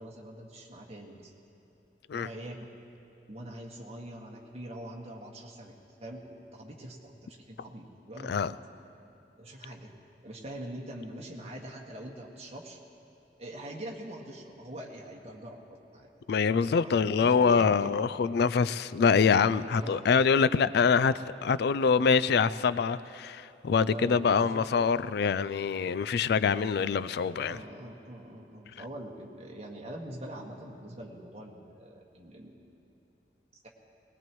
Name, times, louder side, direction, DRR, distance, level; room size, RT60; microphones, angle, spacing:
voice 1, 0.0-1.3 2.1-2.6 3.3-5.7 6.0-8.6 9.4-9.9 10.2-12.8 13.4-15.6 15.9-16.1 16.4-17.9 19.8-20.1 23.9-24.7 27.4-32.7, right 1 dB, 35° right, -2 dB, 1.9 m, -43 dB
voice 2, 16.3-21.1 21.4-27.6, left 5 dB, 65° left, 16 dB, 0.4 m, -25 dB
21.5 x 19.5 x 3.1 m, 2.9 s
head